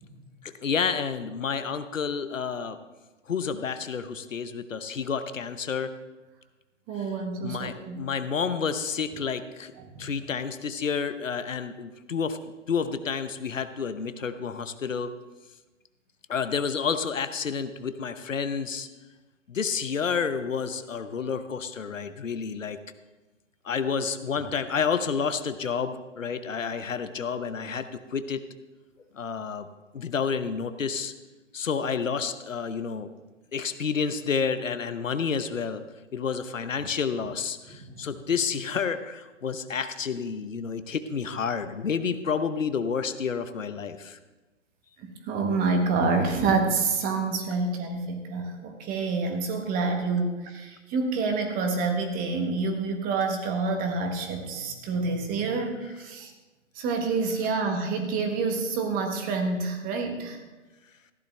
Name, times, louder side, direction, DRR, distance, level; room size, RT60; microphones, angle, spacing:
voice 1, 0.4-2.8 3.3-5.9 7.4-9.7 10.0-15.1 16.3-18.9 19.5-22.8 23.6-28.4 29.1-29.7 29.9-31.1 31.5-33.1 33.5-35.8 36.1-44.2, left 6 dB, 80° left, 11 dB, 0.9 m, -30 dB
voice 2, 6.9-8.1 37.8-38.1 45.0-56.3 56.7-60.4, right 4 dB, 20° right, 4 dB, 1.4 m, -28 dB
14.5 x 10.5 x 3.3 m, 1.2 s
figure-of-eight pair, 125°, 38 cm